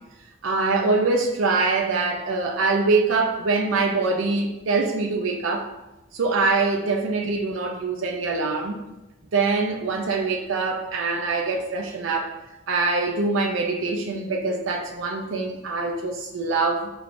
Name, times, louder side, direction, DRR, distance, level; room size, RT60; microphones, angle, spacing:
voice 1, 0.4-5.7 6.1-8.8 9.3-12.3 12.7-16.9, right 3 dB, 75° right, 2 dB, 0.5 m, -24 dB
4.9 x 3.2 x 2.5 m, 1.0 s
head